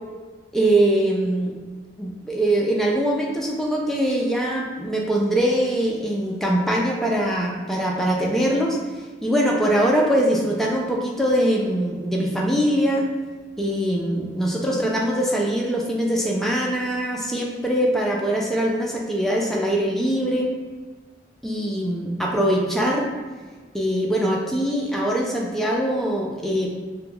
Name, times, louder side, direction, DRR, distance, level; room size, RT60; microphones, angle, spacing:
voice 1, 0.5-1.5 2.0-8.8 9.2-13.1 13.6-20.5 21.4-23.1 23.7-26.7, right 1 dB, ahead, -2 dB, 0.3 m, -22 dB
2.9 x 2.2 x 3.6 m, 1.4 s
head